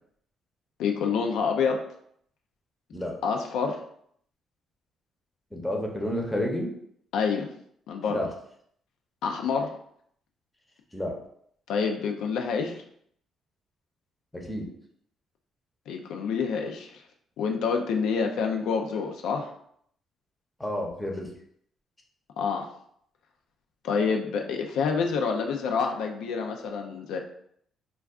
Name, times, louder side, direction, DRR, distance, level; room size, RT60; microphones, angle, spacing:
voice 1, 0.8-1.8 3.2-3.8 7.1-7.5 7.9-8.3 9.2-9.7 11.7-12.8 15.9-17.0 17.4-19.5 22.4-22.7 23.8-27.2, left 5 dB, 85° left, 3 dB, 0.3 m, -27 dB
voice 2, 5.5-6.7 8.1-8.3 10.9-11.2 14.3-14.7 20.6-21.3, left 1 dB, 10° left, 0 dB, 0.6 m, -30 dB
2.3 x 2.3 x 3.5 m, 0.67 s
cardioid pair, 90°, 0 cm